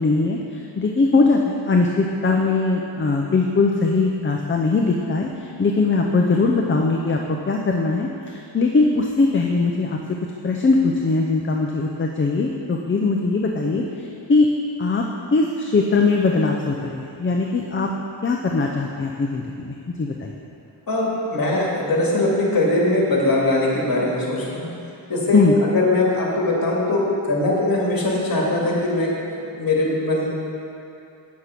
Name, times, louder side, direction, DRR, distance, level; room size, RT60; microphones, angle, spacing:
voice 1, 0.0-10.0 10.4-14.5 14.8-15.0 15.3-17.9 18.2-20.3 25.3-25.6, left 3 dB, 25° left, 1 dB, 0.6 m, -20 dB
voice 2, 20.9-24.7 25.1-29.1 29.6-30.3, left 2 dB, 45° left, -4 dB, 2.1 m, -21 dB
8.3 x 6.5 x 5.8 m, 2.7 s
wide cardioid pair, 110°, 47 cm